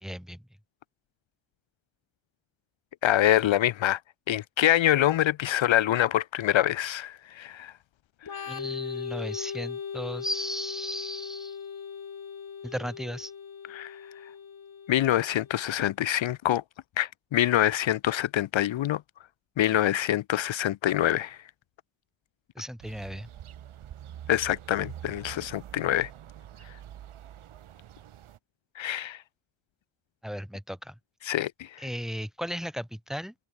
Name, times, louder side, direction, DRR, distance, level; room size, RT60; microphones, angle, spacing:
voice 1, 0.0-0.4 8.5-11.6 12.6-13.3 22.6-23.3 30.2-30.9 31.8-33.3, equal, ahead, 2.1 m, -35 dB
voice 2, 3.0-4.0 4.3-7.7 8.4-8.5 13.7-14.0 14.9-16.6 17.0-19.0 19.6-21.4 24.3-26.1 28.8-29.2 31.2-31.8, left 12 dB, 70° left, 0.6 m, -25 dB
Organ, 8.2-15.7, left 7 dB, 45° left, 1.3 m, -39 dB
sound 1, 22.8-28.4, right 11 dB, 80° right, 1.1 m, -45 dB
wide cardioid pair, 120°, 49 cm